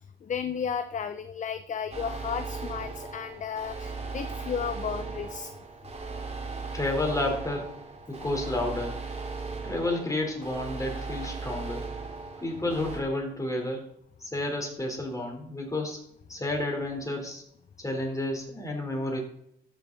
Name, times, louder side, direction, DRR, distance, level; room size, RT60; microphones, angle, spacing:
voice 1, 0.2-5.5, left 7 dB, 40° left, 11 dB, 0.6 m, -33 dB
sound 1, 1.9-13.0, right 4 dB, 30° right, 2.4 m, -37 dB
voice 2, 6.7-7.7 8.1-9.0 9.6-11.9 12.4-13.8 14.2-16.0 16.3-17.4 17.8-19.2, left 2 dB, 15° left, 1 dB, 3.6 m, -31 dB
14.0 x 6.3 x 4.0 m, 0.73 s
cardioid pair, 90°, 20 cm